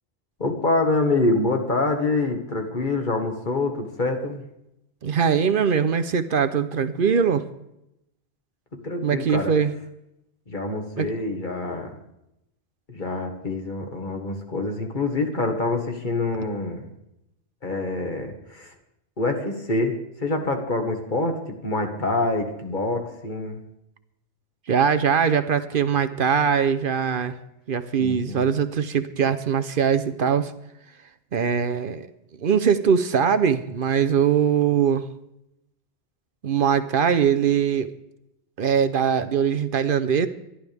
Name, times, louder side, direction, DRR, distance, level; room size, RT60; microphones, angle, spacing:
voice 1, 0.4-4.4 8.7-9.5 10.5-11.9 12.9-16.9 17.6-18.7 19.2-23.6 28.0-28.4, left 2 dB, 50° left, 4 dB, 1.8 m, -26 dB
voice 2, 5.0-7.5 9.0-9.7 11.0-11.1 24.7-27.3 27.7-30.5 31.3-32.1 32.4-35.0 36.4-37.9 38.6-40.3, right 7 dB, 60° right, 11 dB, 0.9 m, -21 dB
25.5 x 11.5 x 3.5 m, 0.85 s
omnidirectional pair, 1.0 m